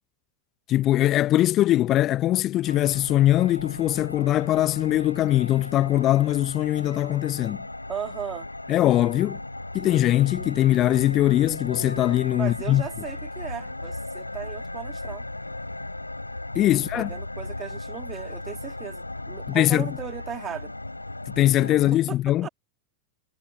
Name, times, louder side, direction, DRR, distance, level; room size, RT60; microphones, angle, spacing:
voice 1, 0.7-7.6 8.7-9.4 9.7-12.8 16.5-17.1 19.5-19.9 21.3-22.5, left 14 dB, 35° left, 0.9 m, -21 dB
sound 1, 2.7-21.9, left 2 dB, 85° left, 4.1 m, -36 dB
voice 2, 7.9-8.5 12.4-15.2 16.9-20.7 22.1-22.5, right 9 dB, 25° right, 2.3 m, -36 dB
figure-of-eight pair, 90°, 0 cm